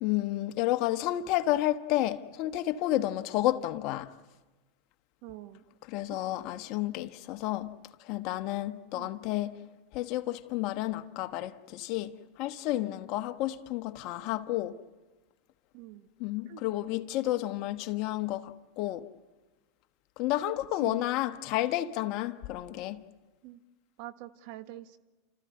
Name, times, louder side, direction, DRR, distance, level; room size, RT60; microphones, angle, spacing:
voice 1, 0.0-4.1 5.9-7.7 8.0-9.6 9.9-12.1 12.4-14.8 16.2-19.0 20.2-23.0, left 15 dB, 55° left, 1.2 m, -31 dB
voice 2, 5.2-5.6 6.1-6.2 9.0-9.1 15.7-16.1 16.4-16.6 20.8-21.1 23.4-23.6 24.0-25.0, right 14 dB, 60° right, 1.5 m, -45 dB
30.0 x 14.5 x 9.6 m
hypercardioid pair, 115°, 0 cm